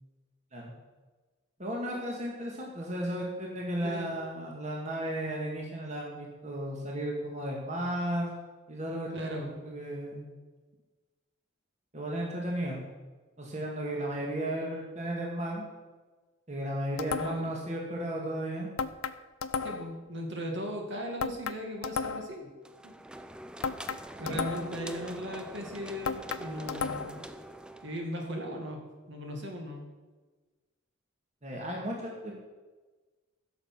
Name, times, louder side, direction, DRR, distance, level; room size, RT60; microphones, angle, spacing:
voice 1, 1.6-8.4 8.7-10.3 11.9-12.8 13.4-15.7 16.5-18.7 24.2-24.4 31.4-32.4, right 1 dB, 35° right, -2 dB, 2.0 m, -34 dB
voice 2, 9.1-9.6 17.2-17.5 19.6-22.5 22.8-22.9 24.2-27.2 27.8-28.8 29.1-29.8, equal, 55° right, 1 dB, 2.3 m, -37 dB
sound 1, 17.0-17.6 18.8-20.0 21.2-22.4 23.6-24.9 26.1-27.3, left 5 dB, 85° left, 0.6 m, -34 dB
sound 2, 22.6-28.1, right 1 dB, 5° right, 0.4 m, -44 dB
15.5 x 6.8 x 6.1 m, 1.3 s
head